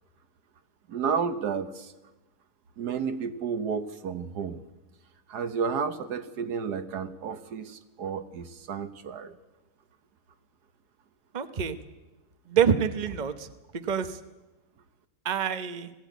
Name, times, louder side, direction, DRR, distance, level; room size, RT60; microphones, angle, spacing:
voice 1, 0.9-1.9 2.8-4.6 5.3-9.3, right 6 dB, 80° right, 11 dB, 1.6 m, -31 dB
voice 2, 11.3-11.8 12.5-13.5 13.7-14.2 15.2-15.9, right 7 dB, 35° right, 10 dB, 0.9 m, -26 dB
19.0 x 16.0 x 9.3 m, 1.1 s
omnidirectional pair, 1.7 m